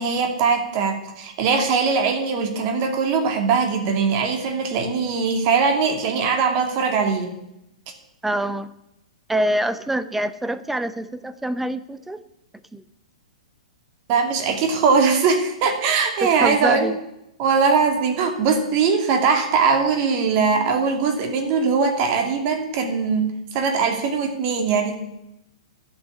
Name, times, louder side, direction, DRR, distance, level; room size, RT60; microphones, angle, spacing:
voice 1, 0.0-7.4 14.1-16.9 17.4-25.0, right 5 dB, 40° right, 5 dB, 2.4 m, -21 dB
voice 2, 8.2-8.7 9.3-12.2 12.7-12.8 16.2-17.0, right 1 dB, 5° right, 13 dB, 0.7 m, -25 dB
11.0 x 6.2 x 8.6 m, 0.85 s
hypercardioid pair, 115°, 4 cm